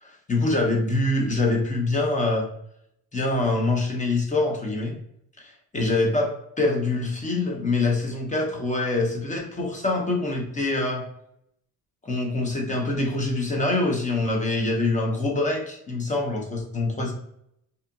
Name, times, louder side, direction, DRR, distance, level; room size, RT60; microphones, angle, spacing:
voice 1, 0.0-2.5 3.1-4.9 5.4-11.0 12.0-17.1, left 2 dB, 20° left, 0 dB, 0.7 m, -25 dB
2.7 x 2.5 x 2.4 m, 0.75 s
cardioid pair, 100°, 36 cm